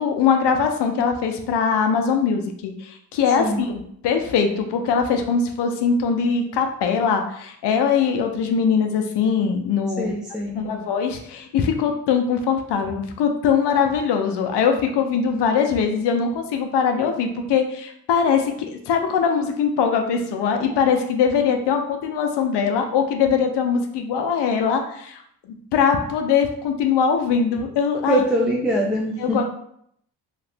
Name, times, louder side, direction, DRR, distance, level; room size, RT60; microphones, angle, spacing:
voice 1, 0.0-10.1 10.5-25.2 25.7-28.2 29.2-29.4, left 6 dB, 80° left, 4 dB, 0.6 m, -21 dB
voice 2, 10.0-10.7 28.1-29.4, right 1 dB, ahead, -3 dB, 0.3 m, -23 dB
2.8 x 2.4 x 3.3 m, 0.70 s
cardioid pair, 85°, 40 cm